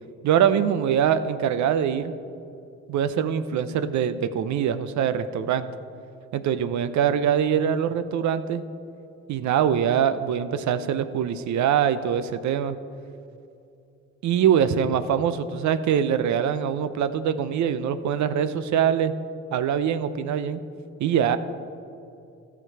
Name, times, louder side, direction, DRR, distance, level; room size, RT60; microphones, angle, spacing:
voice 1, 0.2-2.1 2.9-5.7 6.3-8.6 9.3-12.8 14.2-19.1 19.5-20.6 21.0-21.4, right 8 dB, 70° right, 11 dB, 0.6 m, -23 dB
14.5 x 6.0 x 4.6 m, 2.6 s
cardioid pair, 90°, 30 cm